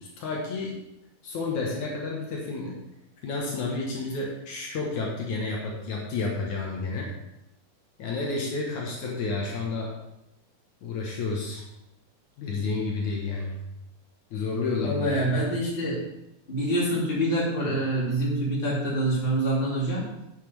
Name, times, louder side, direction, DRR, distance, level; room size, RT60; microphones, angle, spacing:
voice 1, 0.0-0.7 1.2-2.7 3.2-7.1 8.0-9.9 10.8-11.6 12.4-13.6 14.3-15.1, left 3 dB, 70° left, -2 dB, 2.6 m, -30 dB
voice 2, 14.8-16.0 16.5-20.1, right 1 dB, 20° left, -5 dB, 2.6 m, -26 dB
9.4 x 8.5 x 3.4 m, 0.86 s
omnidirectional pair, 3.7 m